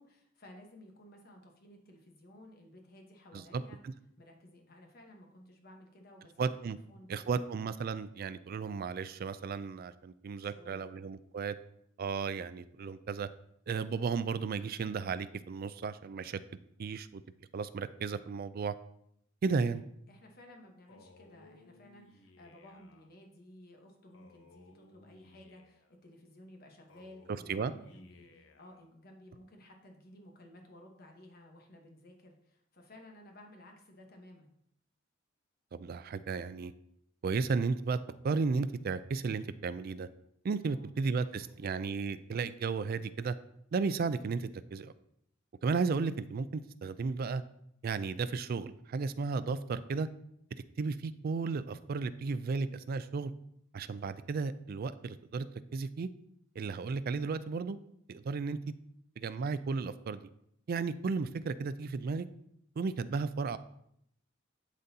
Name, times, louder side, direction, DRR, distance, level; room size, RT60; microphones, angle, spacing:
voice 1, 0.0-3.8 4.2-7.4 10.4-10.9 20.1-34.5 40.6-41.1 41.4-41.7, left 1 dB, 50° left, 2 dB, 1.1 m, -55 dB
voice 2, 3.3-3.9 6.4-6.8 7.1-11.6 12.0-13.3 13.7-16.4 16.8-17.2 17.5-18.7 19.4-19.8 27.5-27.7 35.7-36.7 37.2-38.0 38.2-40.1 40.4-43.4 43.7-44.9 45.6-47.4 47.8-50.1 50.8-53.3 53.7-55.5 55.7-56.1 56.6-57.8 58.1-58.7 59.2-60.3 60.7-62.3 62.8-63.6, right 4 dB, 50° right, 14 dB, 0.3 m, -34 dB
Male speech man speaking, 20.9-23.1 24.1-26.0 26.9-28.9, left 3 dB, 70° left, 0.7 m, -60 dB
11.5 x 3.9 x 2.8 m, 0.74 s
head